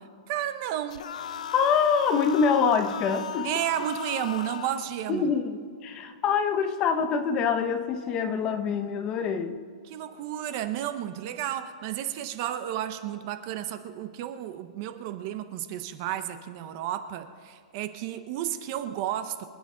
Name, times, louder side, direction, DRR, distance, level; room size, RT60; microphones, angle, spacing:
voice 1, 0.3-1.1 3.4-5.3 9.9-19.5, right 11 dB, 30° right, 11 dB, 0.6 m, -32 dB
sound 1, 0.9-4.9, left 9 dB, 85° left, 0.5 m, -37 dB
voice 2, 1.5-3.5 5.1-5.6 5.8-9.6, left 6 dB, 20° left, 8 dB, 0.7 m, -25 dB
25.5 x 9.6 x 3.8 m, 2.1 s
hypercardioid pair, 180°, 4 cm